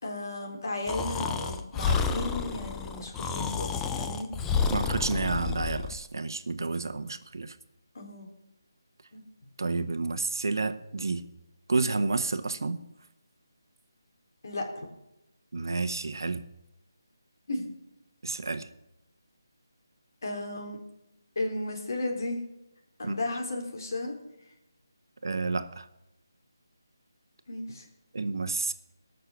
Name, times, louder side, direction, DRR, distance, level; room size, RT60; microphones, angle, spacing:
voice 1, 0.0-4.3 7.9-8.3 9.1-9.2 14.4-14.9 17.5-17.7 20.2-20.8 21.4-22.4 23.0-24.2 27.5-27.9, left 2 dB, 55° left, 1 dB, 3.8 m, -34 dB
Breathing, 0.9-6.0, left 5 dB, 10° left, 0.5 m, -30 dB
voice 2, 4.7-7.6 9.6-11.2 11.7-12.8 15.5-16.4 18.2-18.7 23.0-23.2 25.2-25.9 28.1-28.7, right 3 dB, 65° right, 11 dB, 1.0 m, -30 dB
19.0 x 6.6 x 7.1 m, 0.91 s
figure-of-eight pair, 165°, 2 cm